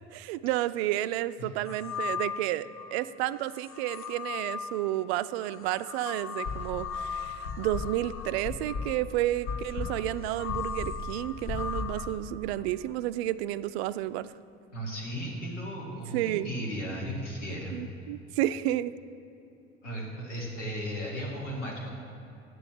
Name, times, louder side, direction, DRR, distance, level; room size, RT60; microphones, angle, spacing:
voice 1, 0.0-14.3 16.1-16.5 17.7-18.9, right 14 dB, 60° right, 14 dB, 0.5 m, -31 dB
sound 1, 1.7-2.9 3.5-12.1, left 6 dB, 35° left, 0.9 m, -38 dB
sound 2, 6.4-7.0 7.4-12.1, left 4 dB, 50° left, 1.4 m, -36 dB
voice 2, 14.7-17.8 19.8-21.9, equal, 80° left, -2 dB, 2.2 m, -35 dB
9.1 x 7.0 x 7.4 m, 2.8 s
figure-of-eight pair, 60°, 35 cm